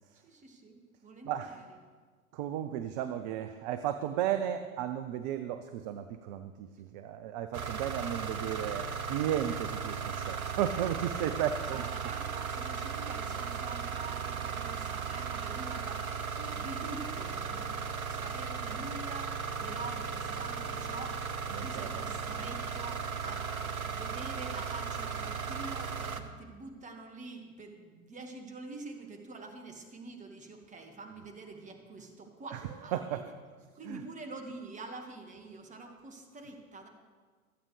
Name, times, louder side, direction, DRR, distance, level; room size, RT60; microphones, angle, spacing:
voice 1, 0.2-1.7 11.7-17.8 18.1-33.3 33.7-36.9, right 3 dB, 15° right, 4 dB, 1.7 m, -46 dB
voice 2, 2.3-11.8 21.5-22.0 32.5-32.6 32.9-33.3 33.9-34.0, right 10 dB, 30° right, 10 dB, 0.6 m, -34 dB
sound 1, 7.5-26.2, right 6 dB, 75° right, 1.0 m, -36 dB
26.0 x 8.8 x 3.3 m, 1.5 s
figure-of-eight pair, 95°, 43 cm